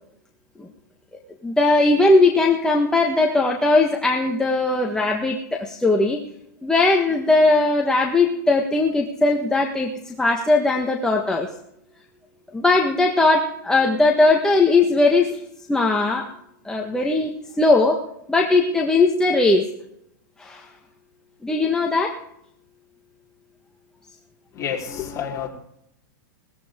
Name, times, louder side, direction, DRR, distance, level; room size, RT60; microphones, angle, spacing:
voice 1, 1.4-6.2 6.6-11.5 12.5-15.4 15.7-16.3 16.6-18.0 18.3-19.6 20.4-20.6 21.4-22.2, left 2 dB, 5° left, 0 dB, 1.4 m, -19 dB
voice 2, 24.5-25.5, left 8 dB, 30° left, -2 dB, 3.9 m, -29 dB
19.0 x 15.0 x 3.7 m, 0.76 s
hypercardioid pair, 130°, 11 cm